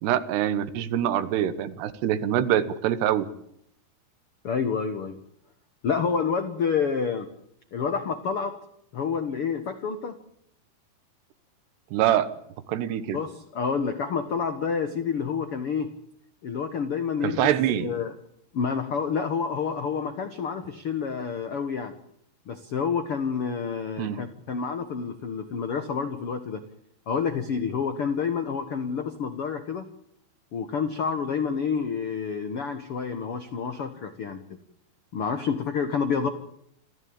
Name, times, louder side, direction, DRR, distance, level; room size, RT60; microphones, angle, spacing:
voice 1, 0.0-3.2 11.9-12.3 12.7-13.2 17.2-18.0 24.0-24.2, right 11 dB, 80° right, 14 dB, 3.3 m, -24 dB
voice 2, 4.4-5.2 5.8-7.3 7.7-8.5 8.9-10.2 13.1-15.9 16.4-17.4 17.8-18.1 18.5-21.9 22.5-26.6 27.1-29.8 30.5-34.4 35.1-36.3, left 6 dB, 80° left, 9 dB, 1.2 m, -28 dB
27.5 x 14.5 x 8.8 m, 0.72 s
omnidirectional pair, 4.8 m